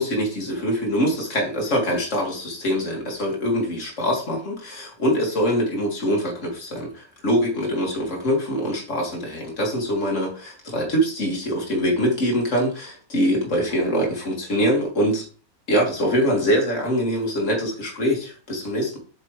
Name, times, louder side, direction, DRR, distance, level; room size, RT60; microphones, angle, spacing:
voice 1, 0.0-15.3 15.7-19.0, equal, 55° left, 0 dB, 2.7 m, -23 dB
7.6 x 6.6 x 3.3 m, 0.39 s
omnidirectional pair, 1.6 m